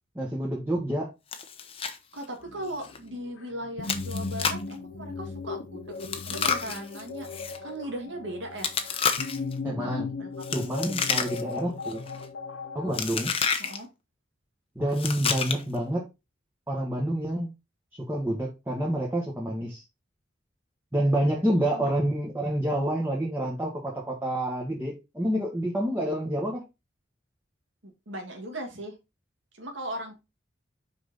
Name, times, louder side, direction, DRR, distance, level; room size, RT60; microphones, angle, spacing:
voice 1, 0.1-1.1 9.6-10.1 10.5-12.0 12.7-13.4 14.7-16.1 16.7-17.5 18.1-19.8 20.9-26.6, right 1 dB, 10° right, 1.5 m, -28 dB
Chewing mastication, 1.3-2.0 2.2-2.3 2.8-3.0 3.8-4.7 6.0-7.6 8.6-9.5 10.4-11.6 11.9-12.2 12.9-13.8 14.9-15.8, left 6 dB, 30° left, 0.9 m, -30 dB
voice 2, 2.1-5.9 6.3-8.7 9.7-10.3 13.6-13.9 21.7-22.0 27.8-29.0 29.5-30.2, right 1 dB, 80° right, 2.0 m, -38 dB
sound 1, 2.4-13.0, left 4 dB, 80° left, 0.8 m, -37 dB
5.9 x 5.3 x 4.1 m
head